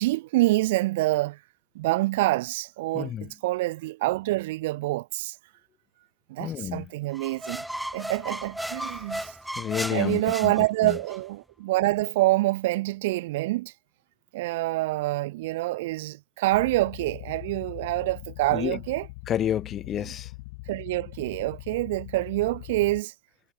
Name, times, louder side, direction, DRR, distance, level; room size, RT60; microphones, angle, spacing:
voice 1, 0.0-1.4 1.8-5.3 6.3-7.6 7.9-9.3 9.9-13.7 14.3-19.1 20.7-23.1, right 19 dB, 70° right, 3.8 m, -26 dB
voice 2, 2.9-3.3 6.4-6.9 9.6-10.5 10.8-11.0 18.5-18.8 19.3-20.3, left 10 dB, 35° left, 2.7 m, -30 dB
sound 1, 7.1-11.2, right 1 dB, ahead, 2.1 m, -35 dB
sound 2, 16.5-23.0, left 23 dB, 65° left, 7.0 m, -42 dB
hypercardioid pair, 90°, 0 cm